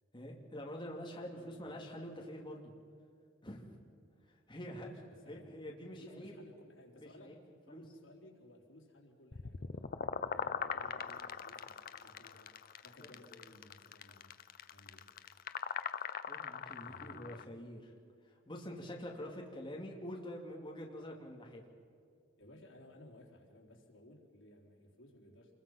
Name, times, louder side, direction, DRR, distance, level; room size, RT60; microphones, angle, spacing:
voice 1, 0.1-2.6 3.4-3.8 4.2-4.9 5.3-6.3 6.9-7.3 7.7-7.8 16.3-17.9 18.2-21.6, equal, 25° left, -1 dB, 2.6 m, -46 dB
voice 2, 4.6-5.5 6.0-7.4 7.7-12.5 12.8-14.3 14.7-15.1 16.8-17.2 22.4-25.5, left 1 dB, 80° left, -1 dB, 3.9 m, -58 dB
sound 1, 9.3-17.4, left 6 dB, 50° left, 0.7 m, -41 dB
27.5 x 22.0 x 5.8 m, 2.3 s
head